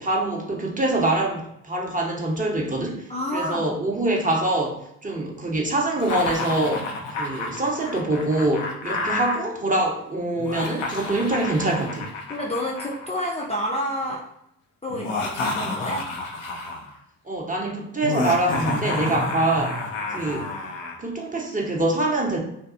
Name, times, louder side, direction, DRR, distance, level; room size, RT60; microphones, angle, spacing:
voice 1, 0.0-3.0 3.3-6.9 7.2-12.1 17.3-20.6 21.0-22.4, right 2 dB, 20° right, -1 dB, 0.8 m, -24 dB
voice 2, 3.1-3.7 12.3-14.3 14.8-16.1, equal, 15° left, -2 dB, 0.6 m, -29 dB
Laughter, 6.0-9.4 10.4-13.7 14.9-16.9 18.0-21.0, left 3 dB, 85° left, 0.5 m, -30 dB
2.6 x 2.3 x 2.5 m, 0.77 s
hypercardioid pair, 40°, 38 cm